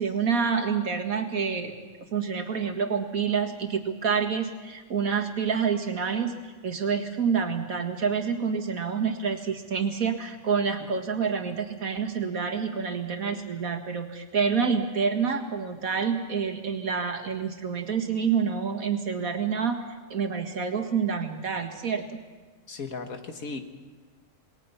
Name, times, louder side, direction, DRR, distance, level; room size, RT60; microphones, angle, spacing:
voice 1, 0.0-1.7 2.1-19.8 20.1-22.2, right 6 dB, 80° right, 4 dB, 2.3 m, -28 dB
voice 2, 22.7-23.6, left 4 dB, 80° left, 6 dB, 2.1 m, -36 dB
27.5 x 20.5 x 5.7 m, 1.4 s
omnidirectional pair, 1.4 m